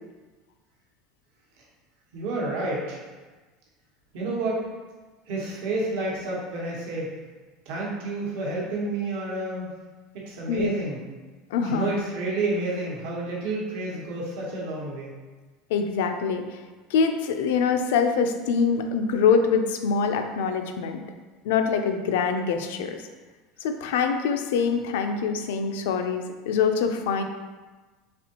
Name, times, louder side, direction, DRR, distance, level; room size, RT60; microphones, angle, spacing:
voice 1, 2.1-3.1 4.1-4.6 5.3-7.1 7.6-9.7 10.1-11.0 11.6-15.1, right 2 dB, 65° right, -4 dB, 1.0 m, -29 dB
voice 2, 11.5-12.0 15.7-16.6 16.9-21.0 21.4-23.0 23.6-27.2, left 6 dB, 90° left, 6 dB, 0.4 m, -24 dB
4.2 x 3.4 x 2.8 m, 1.3 s
cardioid pair, 175°, 0 cm